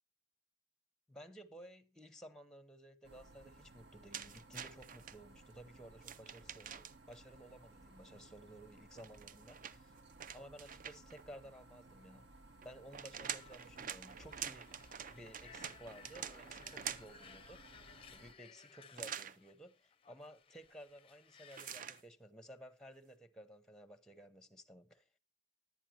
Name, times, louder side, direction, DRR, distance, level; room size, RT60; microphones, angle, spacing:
voice 1, 1.1-9.6 10.3-12.3 12.6-14.7 15.1-17.8 18.1-25.0, equal, 5° left, 0.8 m, -55 dB
PC fans and hard drive closeup, 3.0-18.3, right 2 dB, 70° right, 1.2 m, -60 dB
sound 1, 4.1-5.2 6.0-7.1 8.9-11.2 12.6-17.2 19.0-19.4 21.5-22.0, right 8 dB, 45° right, 0.5 m, -46 dB
sound 2, 13.3-22.0, left 6 dB, 30° left, 0.5 m, -60 dB
11.0 x 9.1 x 4.3 m
head